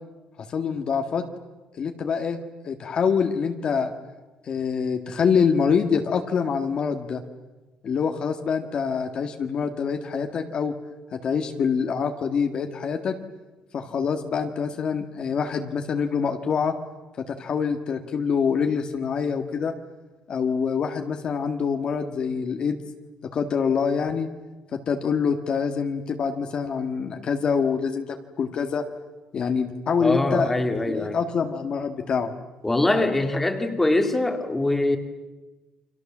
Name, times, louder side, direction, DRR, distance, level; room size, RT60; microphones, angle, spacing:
voice 1, 0.5-1.2 1.8-2.4 2.6-3.9 4.4-7.2 7.8-10.7 11.1-13.1 13.7-16.7 17.2-19.7 20.3-22.8 23.3-24.3 24.7-28.8 29.3-30.5 30.9-32.3, left 6 dB, 35° left, 5 dB, 1.7 m, -25 dB
voice 2, 30.0-31.2 32.6-35.0, left 2 dB, 10° left, 6 dB, 2.1 m, -23 dB
30.0 x 26.0 x 7.4 m, 1.1 s
cardioid pair, 175°, 3 cm